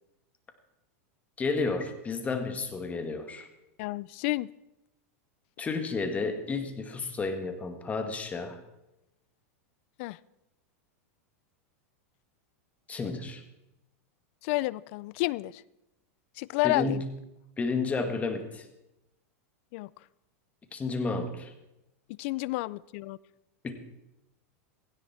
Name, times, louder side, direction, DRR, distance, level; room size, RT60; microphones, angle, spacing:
voice 1, 1.4-3.5 5.6-8.6 12.9-13.4 16.6-17.1 17.6-18.7 20.7-21.5 23.6-23.7, left 3 dB, 15° left, 7 dB, 1.8 m, -31 dB
voice 2, 3.8-4.5 10.0-10.2 14.4-15.6 16.4-17.0 19.7-19.9 22.1-23.2, left 20 dB, 55° left, 23 dB, 0.5 m, -30 dB
16.5 x 16.0 x 4.4 m, 0.90 s
supercardioid pair, 135°, 8 cm